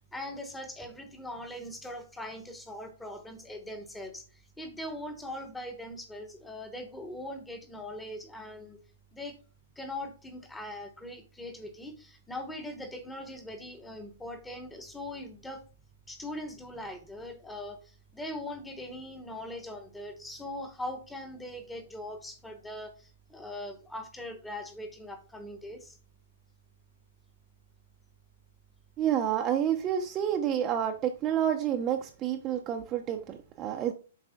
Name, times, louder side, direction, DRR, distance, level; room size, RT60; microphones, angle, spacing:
voice 1, 0.1-8.8 9.1-9.4 9.8-15.6 16.1-26.0, left 1 dB, 5° left, 6 dB, 1.0 m, -41 dB
voice 2, 29.0-33.9, right 9 dB, 20° right, 5 dB, 0.6 m, -29 dB
7.4 x 4.8 x 3.5 m, 0.36 s
hypercardioid pair, 165°, 0 cm